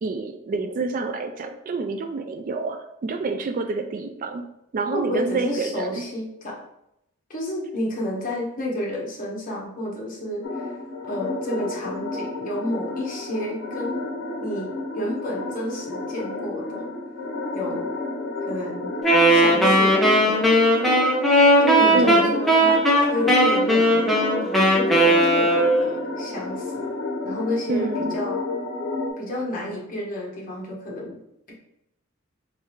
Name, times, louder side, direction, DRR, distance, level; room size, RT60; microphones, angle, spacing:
voice 1, 0.0-6.0 21.9-22.3 27.7-28.2, right 3 dB, 40° right, 7 dB, 0.3 m, -28 dB
voice 2, 4.9-6.6 7.3-10.7 11.0-14.0 14.4-16.9 17.5-17.8 18.5-18.9 19.3-20.7 21.6-24.1 24.7-26.9 27.2-28.4 29.2-31.2, left 1 dB, 40° left, -3 dB, 1.2 m, -31 dB
sound 1, 10.4-29.1, left 2 dB, 70° left, 0.9 m, -31 dB
Wind instrument woodwind instrument, 19.0-26.0, equal, ahead, 0.7 m, -18 dB
3.6 x 3.2 x 4.5 m, 0.82 s
head